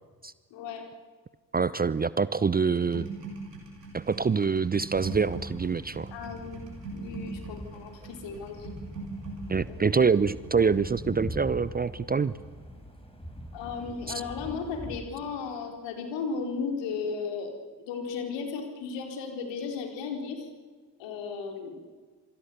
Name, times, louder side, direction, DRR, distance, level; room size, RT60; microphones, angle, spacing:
voice 1, 0.5-0.9 6.1-6.6 6.9-8.7 9.7-9.8 13.5-20.5 21.0-21.8, left 5 dB, 60° left, 4 dB, 4.5 m, -35 dB
voice 2, 1.5-3.1 3.9-6.1 9.5-12.3, right 5 dB, 20° right, 18 dB, 0.7 m, -25 dB
sound 1, 2.7-14.6 14.9-15.3, right 3 dB, 85° right, 4.1 m, -43 dB
sound 2, 4.9-15.0, equal, 10° left, 5.4 m, -43 dB
27.0 x 25.5 x 7.1 m, 1.5 s
figure-of-eight pair, 45°, 48 cm